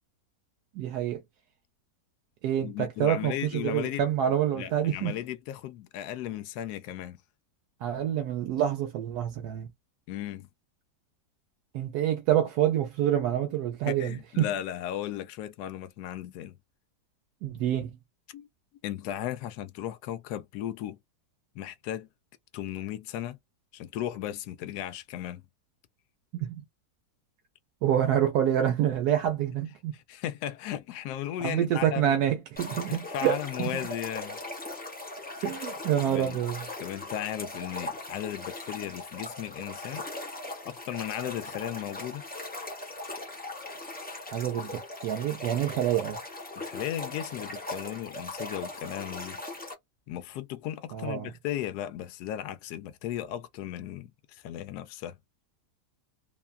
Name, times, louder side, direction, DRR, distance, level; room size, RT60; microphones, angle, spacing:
voice 1, 0.8-1.2 2.4-5.1 7.8-9.7 11.7-14.5 17.4-17.9 26.3-26.6 27.8-29.9 31.4-33.8 35.4-36.7 44.3-46.2 50.9-51.3, right 10 dB, 75° right, 1.1 m, -27 dB
voice 2, 2.6-4.1 4.5-7.2 10.1-10.5 13.8-16.6 18.3-18.5 18.8-21.0 21.5-22.1 22.5-23.4 23.7-25.4 29.9-32.2 32.9-34.4 36.0-36.4 36.8-40.0 40.6-42.2 46.5-49.4 50.1-55.2, left 12 dB, 75° left, 1.1 m, -36 dB
sound 1, 32.6-49.7, left 2 dB, 10° left, 0.4 m, -39 dB
2.9 x 2.3 x 2.3 m
omnidirectional pair, 1.8 m